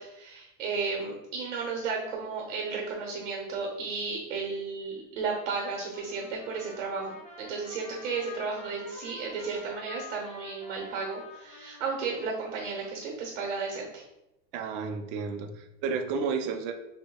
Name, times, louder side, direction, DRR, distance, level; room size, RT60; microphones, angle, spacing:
voice 1, 0.0-14.0, right 4 dB, 90° right, 0 dB, 1.0 m, -34 dB
Trumpet, 5.9-13.1, left 3 dB, 20° left, 0.6 m, -48 dB
voice 2, 14.5-16.7, right 5 dB, 45° right, 6 dB, 0.5 m, -32 dB
6.1 x 2.2 x 2.2 m, 0.91 s
supercardioid pair, 140°, 38 cm